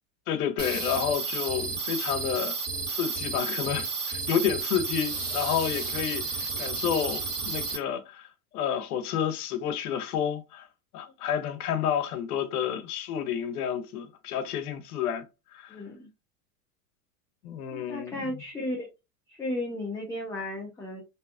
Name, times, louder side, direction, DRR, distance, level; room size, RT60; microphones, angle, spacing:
voice 1, 0.3-2.6 2.9-8.3 8.5-10.7 10.9-15.2 15.5-15.8 17.4-18.2, left 8 dB, 80° left, 0.7 m, -30 dB
sound 1, 0.6-7.8, right 4 dB, 35° right, 1.4 m, -32 dB
voice 2, 15.7-16.1 17.7-18.9 19.3-21.0, left 1 dB, 5° left, 0.4 m, -34 dB
2.7 x 2.3 x 2.4 m
supercardioid pair, 115°, 44 cm